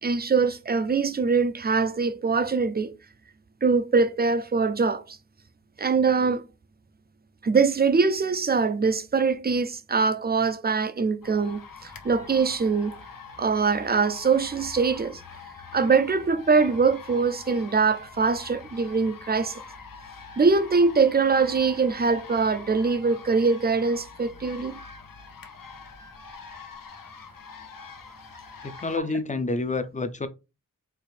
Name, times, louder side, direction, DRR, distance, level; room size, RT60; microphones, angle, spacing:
voice 1, 0.0-2.9 3.6-5.2 5.8-6.4 7.4-13.0 13.4-15.2 15.7-19.6 20.4-24.8, right 4 dB, 30° right, 0.4 m, -23 dB
sound 1, 11.2-29.0, left 5 dB, 85° left, 0.8 m, -44 dB
voice 2, 28.6-30.3, left 3 dB, 25° left, 0.5 m, -28 dB
4.4 x 2.5 x 3.3 m
wide cardioid pair, 100°, 33 cm